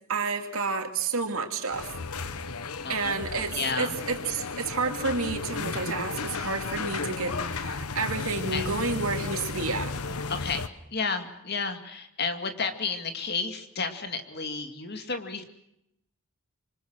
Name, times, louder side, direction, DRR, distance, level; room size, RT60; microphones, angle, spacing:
voice 1, 0.1-2.0 2.9-9.9, right 4 dB, 70° right, 5 dB, 2.9 m, -30 dB
sound 1, 1.7-10.7, left 4 dB, 85° left, 1.1 m, -34 dB
voice 2, 2.8-3.2 3.5-3.9 8.5-8.7 10.3-10.7 10.9-15.4, left 4 dB, 45° left, 7 dB, 2.3 m, -31 dB
27.5 x 24.5 x 6.4 m, 0.80 s
head